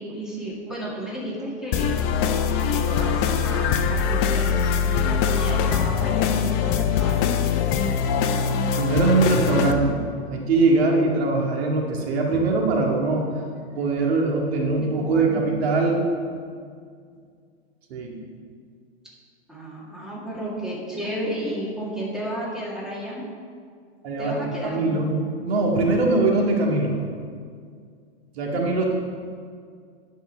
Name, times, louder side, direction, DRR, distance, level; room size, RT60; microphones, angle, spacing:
voice 1, 0.0-2.0 2.6-7.4 14.8-15.4 19.5-23.2 24.2-25.2, equal, ahead, -6 dB, 2.0 m, -32 dB
sound 1, 1.7-9.7, left 6 dB, 35° left, 0.7 m, -22 dB
voice 2, 8.4-10.0 10.3-13.3 13.8-16.0 17.9-18.2 24.0-24.3 24.6-27.0 28.4-28.9, right 3 dB, 70° right, 0 dB, 2.0 m, -22 dB
10.5 x 5.1 x 5.7 m, 2.1 s
hypercardioid pair, 135°, 33 cm